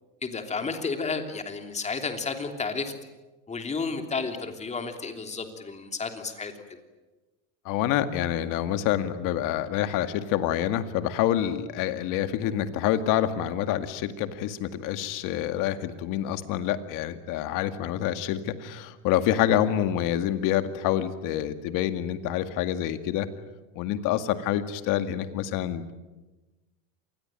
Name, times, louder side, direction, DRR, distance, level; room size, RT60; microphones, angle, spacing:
voice 1, 0.2-2.9 3.5-6.5, left 4 dB, 15° left, 6 dB, 3.2 m, -32 dB
voice 2, 7.7-23.3 23.8-25.9, left 11 dB, 55° left, 10 dB, 2.1 m, -27 dB
27.0 x 20.5 x 9.1 m, 1.1 s
supercardioid pair, 130°, 39 cm